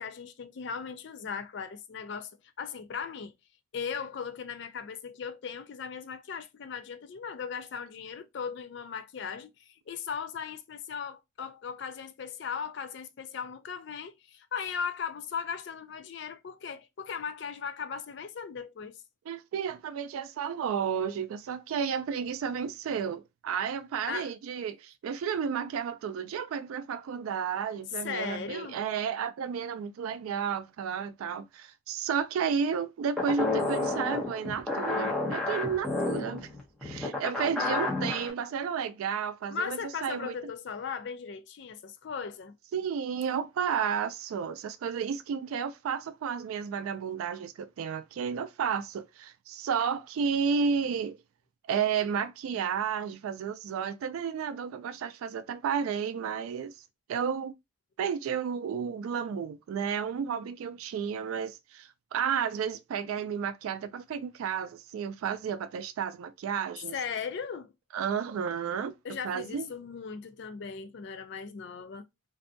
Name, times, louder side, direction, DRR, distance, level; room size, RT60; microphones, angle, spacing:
voice 1, 0.0-2.3 2.6-3.3 3.7-19.0 24.1-24.3 28.0-28.8 39.5-42.6 66.9-67.7 69.0-72.1, left 6 dB, 55° left, 0.3 m, -38 dB
voice 2, 19.3-36.5 36.8-40.4 42.7-51.2 51.7-56.7 57.1-57.5 58.0-66.9 67.9-68.9 69.2-69.7, right 7 dB, 85° right, 0.3 m, -32 dB
sound 1, 33.2-38.3, left 2 dB, ahead, 0.6 m, -30 dB
2.6 x 2.2 x 2.5 m
head